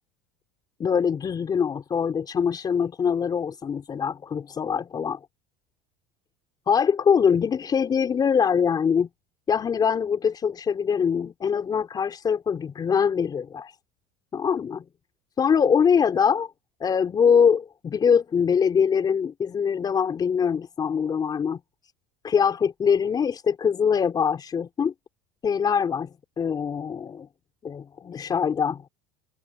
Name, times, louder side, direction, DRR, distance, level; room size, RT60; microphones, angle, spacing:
voice 1, 0.8-5.2 6.7-9.1 9.5-13.7 14.3-14.8 15.4-16.5 16.8-21.6 22.2-24.9 25.4-26.1 26.4-27.3 27.6-28.9, left 7 dB, 25° left, 4.5 m, -23 dB
supercardioid pair, 130°, 16 cm